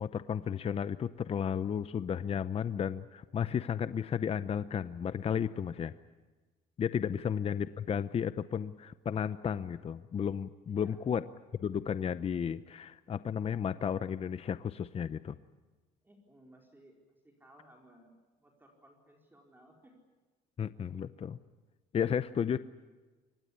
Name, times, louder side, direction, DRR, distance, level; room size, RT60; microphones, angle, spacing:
voice 1, 0.0-5.9 6.8-11.2 11.6-15.4 20.6-21.4 21.9-22.6, left 8 dB, 35° left, 13 dB, 0.7 m, -33 dB
voice 2, 6.8-7.3 7.6-7.7 10.7-11.1 12.7-12.8 16.0-17.0 17.2-19.9, right 1 dB, 10° right, 1 dB, 4.5 m, -60 dB
24.5 x 20.0 x 9.9 m, 1.3 s
cardioid pair, 110°, 17 cm